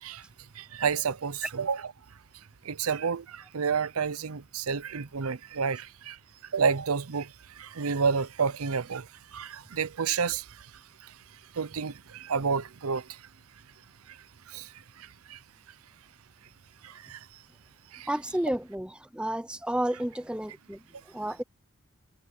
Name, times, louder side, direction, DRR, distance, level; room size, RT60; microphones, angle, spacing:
voice 1, 0.5-1.9 2.6-6.2 6.5-10.7 11.0-11.2 11.5-13.3 14.1-14.2 14.5-15.4 16.8-17.3 17.9-18.1, right 6 dB, 90° right, 0.7 m, -30 dB
voice 2, 18.1-21.4, right 1 dB, 5° right, 0.8 m, -31 dB
head